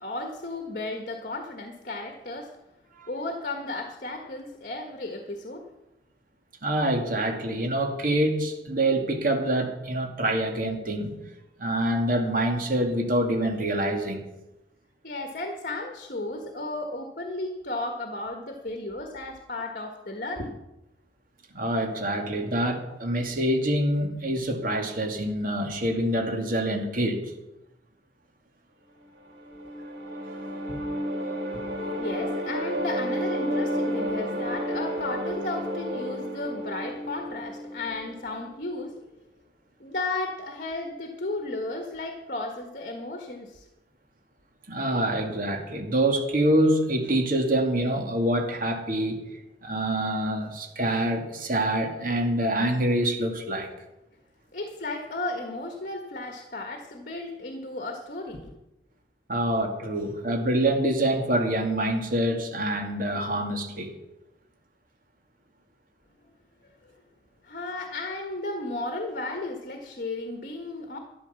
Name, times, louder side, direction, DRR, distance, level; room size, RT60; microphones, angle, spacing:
voice 1, 0.0-2.5 3.1-5.6 15.0-20.5 31.9-39.0 39.8-43.7 54.5-58.5 67.4-71.0, left 2 dB, 50° left, 5 dB, 1.5 m, -34 dB
voice 2, 6.6-11.2 11.6-14.2 21.5-27.3 30.1-30.3 30.7-30.8 44.7-49.2 49.6-53.7 59.3-63.9, right 1 dB, 50° right, 3 dB, 2.4 m, -26 dB
sound 1, 29.2-38.3, equal, 90° right, 4.6 m, -31 dB
13.0 x 10.5 x 7.0 m, 0.96 s
head